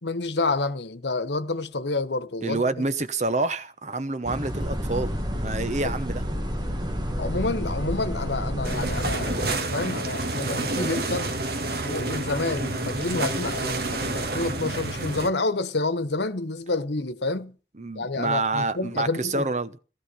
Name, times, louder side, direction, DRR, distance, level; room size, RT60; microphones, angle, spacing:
voice 1, 0.0-2.6 5.8-5.9 7.2-11.4 11.8-17.5 17.9-19.5, left 3 dB, 75° left, 1.2 m, -29 dB
voice 2, 2.4-5.1 5.4-6.2 17.8-19.8, right 2 dB, 40° right, 0.9 m, -27 dB
sound 1, 4.2-9.6, equal, 25° right, 1.7 m, -32 dB
sound 2, 4.6-9.6 10.0-10.1, equal, 5° right, 2.2 m, -34 dB
sound 3, 8.6-15.3, right 2 dB, 60° right, 1.6 m, -29 dB
16.0 x 13.5 x 5.7 m
head